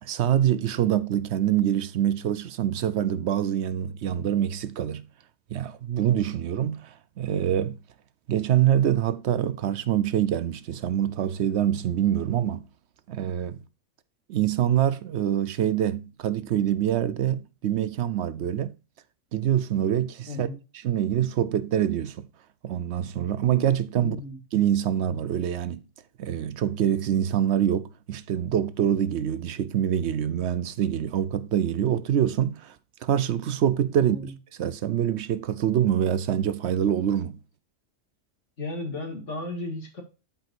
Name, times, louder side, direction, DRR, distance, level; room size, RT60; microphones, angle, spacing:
voice 1, 0.0-5.1 5.5-7.8 8.3-12.7 13.1-13.6 14.3-18.7 19.3-20.5 20.8-22.3 22.6-24.2 24.5-25.8 26.2-32.7 33.0-34.2 34.6-37.4, right 10 dB, 70° right, 0.9 m, -25 dB
voice 2, 24.0-24.4 34.0-34.3 38.6-40.0, left 2 dB, 75° left, 2.4 m, -34 dB
12.0 x 4.6 x 2.5 m
omnidirectional pair, 1.2 m